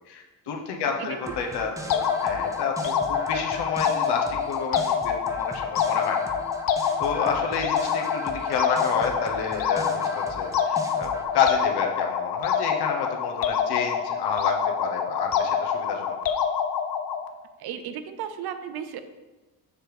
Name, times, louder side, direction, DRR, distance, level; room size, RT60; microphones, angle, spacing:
voice 1, 0.1-6.2 7.0-16.2, left 6 dB, 75° left, 2 dB, 1.1 m, -29 dB
sound 1, 1.2-11.3, right 1 dB, 10° right, 0.7 m, -39 dB
sound 2, 1.9-17.3, left 7 dB, 60° left, 0.6 m, -26 dB
voice 2, 17.6-19.0, right 9 dB, 70° right, 10 dB, 0.7 m, -34 dB
6.6 x 3.1 x 5.1 m, 1.2 s
cardioid pair, 90°, 40 cm